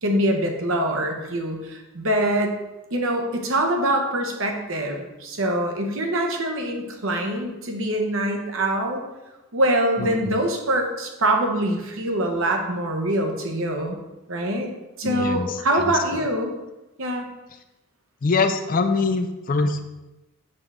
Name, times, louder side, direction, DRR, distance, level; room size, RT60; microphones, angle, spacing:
voice 1, 0.0-2.5 2.9-9.0 9.5-14.0 14.3-14.7 15.0-16.5 17.0-17.3, right 1 dB, 60° right, 3 dB, 0.9 m, -24 dB
voice 2, 10.0-10.5 15.0-16.2 18.2-19.9, left 3 dB, 40° left, 8 dB, 0.4 m, -24 dB
5.3 x 3.6 x 5.5 m, 1.0 s
head